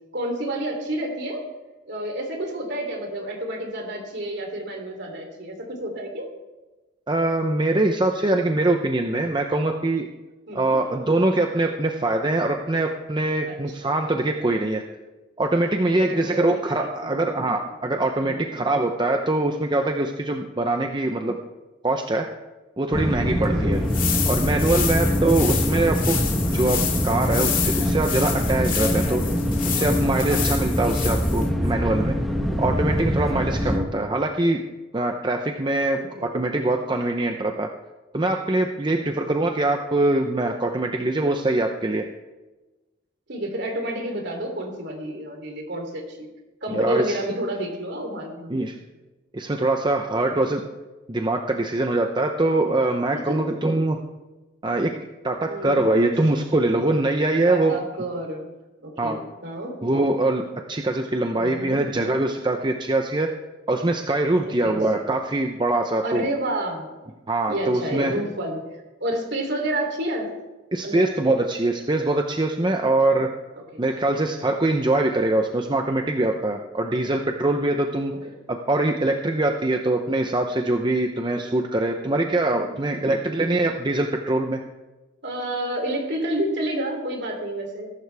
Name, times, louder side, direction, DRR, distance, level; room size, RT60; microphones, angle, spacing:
voice 1, 0.1-1.4 1.9-6.3 10.5-10.8 13.5-14.1 15.7-17.4 18.2-18.5 23.5-23.8 24.8-25.5 33.5-33.8 36.0-36.3 38.9-39.2 43.3-46.3 46.6-48.6 50.2-50.3 53.1-53.5 55.5-56.2 57.5-58.5 58.8-59.8 61.3-61.8 64.4-64.8 66.0-66.9 67.5-70.3 70.8-71.1 72.8-73.2 73.7-73.8 77.0-77.1 78.1-78.2 82.1-83.4 85.2-87.9, right 1 dB, 60° right, 3 dB, 3.2 m, -30 dB
voice 2, 7.1-10.1 10.5-14.8 15.4-21.4 21.8-22.3 22.8-23.8 24.3-26.2 26.5-29.2 29.7-32.2 32.6-34.6 34.9-37.7 38.1-42.1 46.7-47.2 48.5-48.8 49.3-50.6 51.1-54.0 54.6-54.9 55.2-57.7 59.0-59.2 59.8-60.4 60.7-63.3 63.7-66.2 67.3-68.1 70.7-73.3 73.8-78.1 78.5-84.6, right 2 dB, 25° right, 4 dB, 0.7 m, -23 dB
sound 1, 22.9-33.8, equal, ahead, 1.5 m, -24 dB
sound 2, 23.7-31.5, left 8 dB, 45° left, 2.3 m, -29 dB
21.0 x 11.5 x 3.5 m, 1.1 s
head